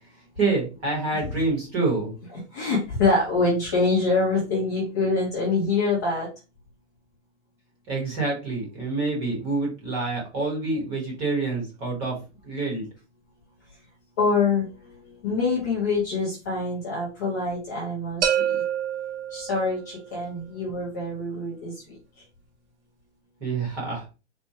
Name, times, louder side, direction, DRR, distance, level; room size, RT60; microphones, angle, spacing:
voice 1, 0.4-2.1 7.9-12.1 12.4-12.8 23.4-24.1, right 3 dB, 15° right, -2 dB, 1.0 m, -27 dB
voice 2, 2.5-6.3 14.2-14.7 15.2-18.5 19.3-21.7, left 3 dB, 15° left, -6 dB, 0.7 m, -25 dB
sound 1, 18.2-20.1, right 9 dB, 75° right, 1.2 m, -27 dB
4.2 x 2.2 x 4.6 m, 0.30 s
hypercardioid pair, 180°, 35 cm